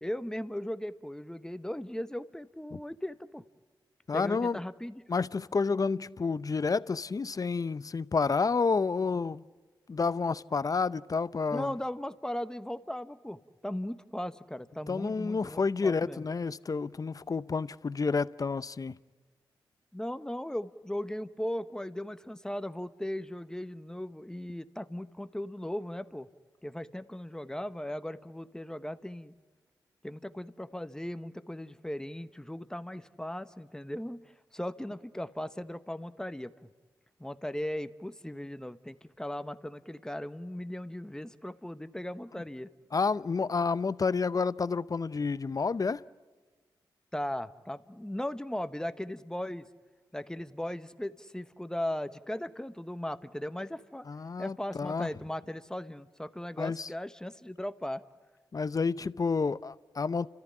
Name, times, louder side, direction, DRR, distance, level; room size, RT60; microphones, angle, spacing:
voice 1, 0.0-3.4 4.1-5.0 11.5-16.2 19.9-26.3 26.6-29.3 30.0-36.5 37.2-42.7 47.1-49.7 50.1-54.1 54.4-58.0, left 1 dB, 5° left, 1.1 m, -37 dB
voice 2, 4.1-4.6 5.1-9.4 9.9-11.7 14.9-18.9 42.9-46.0 54.1-55.1 56.6-56.9 58.5-60.3, left 4 dB, 45° left, 0.7 m, -30 dB
30.0 x 14.0 x 10.0 m
supercardioid pair, 45°, 9 cm